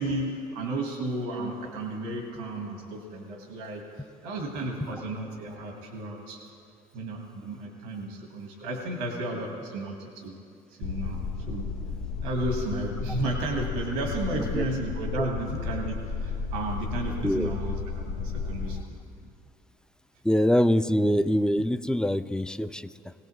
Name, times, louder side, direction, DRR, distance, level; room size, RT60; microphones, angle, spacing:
voice 1, 0.0-3.8 4.2-6.4 6.9-10.3 10.7-11.7 12.2-19.0, right 2 dB, 90° right, 1 dB, 1.6 m, -33 dB
sound 1, 10.8-18.8, left 5 dB, 75° left, 0.7 m, -33 dB
voice 2, 17.2-17.6 20.2-22.9, equal, 5° left, 12 dB, 0.5 m, -24 dB
19.0 x 17.5 x 3.2 m, 2.4 s
supercardioid pair, 60°, 17 cm